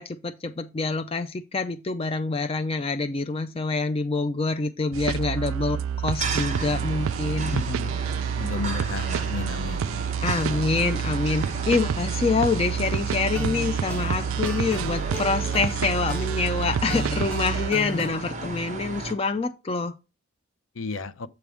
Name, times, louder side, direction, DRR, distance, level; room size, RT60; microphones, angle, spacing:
voice 1, 0.0-7.5 10.2-19.9, left 4 dB, 25° left, 0.4 m, -26 dB
sound 1, 4.9-17.7, right 8 dB, 70° right, 0.3 m, -29 dB
sound 2, 6.2-19.1, right 2 dB, 35° right, 1.2 m, -34 dB
voice 2, 7.5-8.0 8.4-9.9 20.8-21.1, left 5 dB, 65° left, 0.7 m, -32 dB
sound 3, 13.1-18.1, equal, 5° left, 1.0 m, -37 dB
7.9 x 3.5 x 6.2 m
head